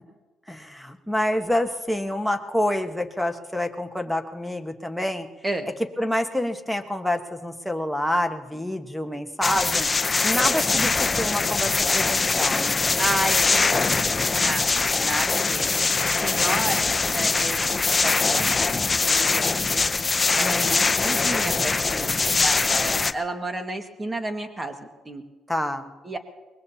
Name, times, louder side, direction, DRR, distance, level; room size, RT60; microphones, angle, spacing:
voice 1, 0.5-5.3 6.0-9.9 10.2-12.9 20.4-20.8 25.5-25.9, left 1 dB, ahead, 7 dB, 1.3 m, -27 dB
sound 1, 9.4-23.1, left 4 dB, 30° left, 0.7 m, -22 dB
voice 2, 13.0-15.7 16.2-19.8 20.3-25.2 26.0-26.2, right 1 dB, 20° right, 5 dB, 1.8 m, -32 dB
24.0 x 21.0 x 2.9 m, 1.2 s
cardioid pair, 90°, 0 cm